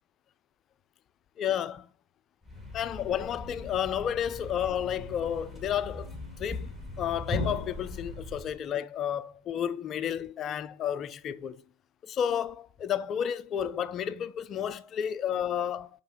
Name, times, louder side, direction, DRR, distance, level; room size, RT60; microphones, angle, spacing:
voice 1, 1.4-1.9 2.7-6.1 6.4-6.7 7.0-11.6 12.0-15.9, left 9 dB, 30° left, 0.4 m, -31 dB
Thump thud, 2.4-8.6, left 2 dB, 10° right, 1.8 m, -39 dB
5.4 x 5.3 x 4.1 m
figure-of-eight pair, 90°, 0 cm